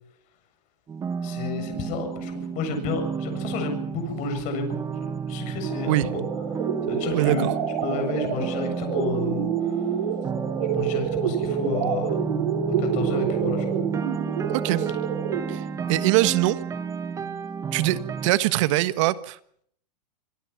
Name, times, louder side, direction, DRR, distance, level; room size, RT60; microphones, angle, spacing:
sound 1, 0.9-18.3, right 6 dB, 15° right, 1.2 m, -31 dB
voice 1, 1.2-6.2 6.5-7.5 7.8-10.0 10.7-12.2 12.8-13.8, left 4 dB, 35° left, 5 dB, 7.8 m, -31 dB
sound 2, 5.7-15.7, right 8 dB, 65° right, 6.6 m, -28 dB
voice 2, 7.1-7.5 14.5-14.9 15.5-16.6 17.7-19.4, right 16 dB, 50° right, 14 dB, 1.4 m, -23 dB
26.5 x 22.5 x 6.0 m, 0.64 s
hypercardioid pair, 145°, 21 cm